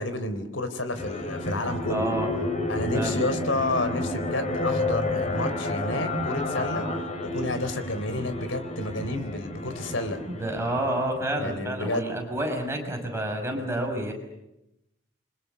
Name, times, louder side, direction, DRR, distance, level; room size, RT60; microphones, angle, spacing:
voice 1, 0.0-2.1 2.7-6.9 7.2-10.2 11.4-12.0, left 2 dB, 80° left, 10 dB, 3.9 m, -30 dB
sound 1, 1.0-11.4, left 2 dB, 35° left, 6.3 m, -31 dB
voice 2, 1.9-2.3 2.9-3.2 10.3-14.1, right 1 dB, 15° right, 3 dB, 6.0 m, -29 dB
29.0 x 25.0 x 7.1 m, 0.86 s
head